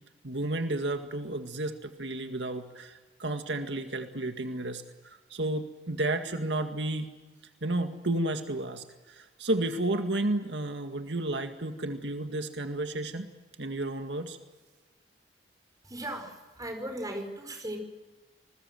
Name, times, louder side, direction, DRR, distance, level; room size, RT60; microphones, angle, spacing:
voice 1, 0.2-7.1 7.6-13.3 13.6-14.4, right 2 dB, 90° right, 6 dB, 1.9 m, -32 dB
voice 2, 15.8-17.8, right 1 dB, 20° right, 4 dB, 5.1 m, -37 dB
28.0 x 20.5 x 7.8 m, 1.3 s
head